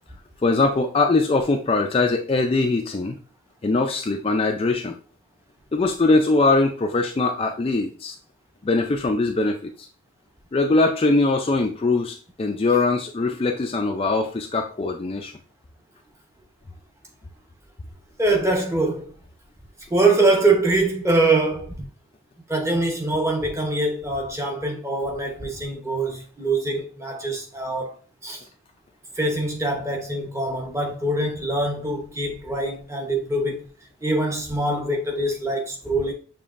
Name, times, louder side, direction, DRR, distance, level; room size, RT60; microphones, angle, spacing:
voice 1, 0.4-3.2 3.6-4.9 5.7-8.1 8.6-9.9 10.5-15.3, left 3 dB, 25° left, 0.3 m, -21 dB
voice 2, 18.2-19.1 19.9-21.8 22.5-27.9 28.2-28.4 29.2-33.7 34.0-36.1, right 2 dB, 15° right, 0.8 m, -23 dB
6.9 x 3.0 x 2.5 m
head